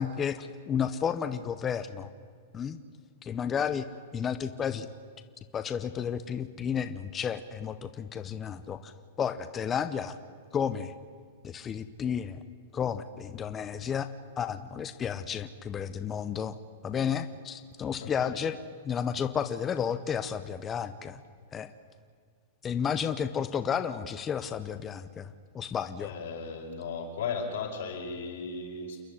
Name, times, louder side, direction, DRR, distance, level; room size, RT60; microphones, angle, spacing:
voice 1, 0.0-2.1 2.5-2.8 3.2-3.9 4.1-4.9 5.5-10.2 10.5-10.9 11.4-12.4 12.7-14.1 14.4-16.6 16.8-18.6 18.8-21.2 21.5-21.7 22.6-26.1, left 7 dB, 20° left, 11 dB, 0.7 m, -32 dB
voice 2, 18.0-18.4 26.0-29.0, left 5 dB, 70° left, 0 dB, 5.4 m, -36 dB
28.5 x 10.5 x 9.9 m, 2.1 s
supercardioid pair, 155°, 0 cm